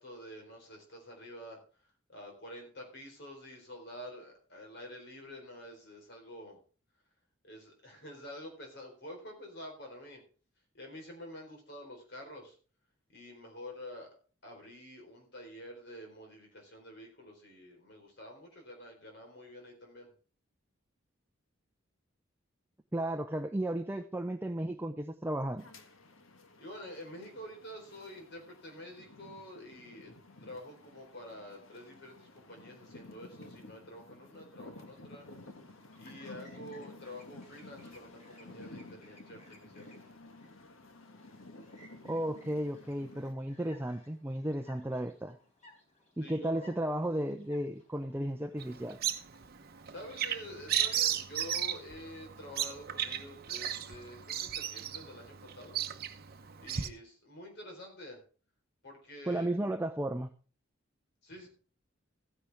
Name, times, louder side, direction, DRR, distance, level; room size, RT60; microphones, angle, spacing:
voice 1, 0.0-1.6 2.1-6.6 7.4-10.2 10.7-12.6 13.1-14.1 14.4-20.1 26.6-30.1 30.4-35.3 36.0-39.9 46.2-46.7 49.9-55.8 56.6-58.2 58.8-59.7 61.2-61.5, left 1 dB, 55° left, 4.1 m, -48 dB
voice 2, 22.9-25.6 42.0-45.4 46.2-49.0 59.3-60.3, right 1 dB, 10° right, 0.6 m, -34 dB
sound 1, 25.6-43.3, left 2 dB, 85° left, 1.5 m, -53 dB
Chirp tweet, 34.7-49.9, left 1 dB, 35° left, 3.9 m, -62 dB
Bird vocalization bird call bird song, 48.6-56.9, right 10 dB, 50° right, 0.8 m, -35 dB
14.5 x 10.0 x 3.5 m
head